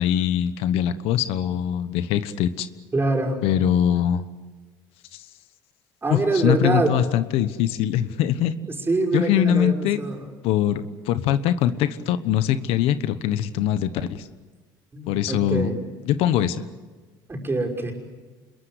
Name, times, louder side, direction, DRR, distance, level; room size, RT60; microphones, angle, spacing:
voice 1, 0.0-2.7 3.4-4.2 5.1-5.2 6.1-8.5 9.1-10.0 10.4-14.3 15.1-15.7 16.0-16.6, left 10 dB, 80° left, 12 dB, 1.2 m, -22 dB
voice 2, 2.9-3.4 6.0-7.0 8.7-10.2 14.9-15.8 17.3-17.9, right 2 dB, 20° right, 1 dB, 5.8 m, -24 dB
27.0 x 22.0 x 8.1 m, 1.3 s
supercardioid pair, 90°, 10 cm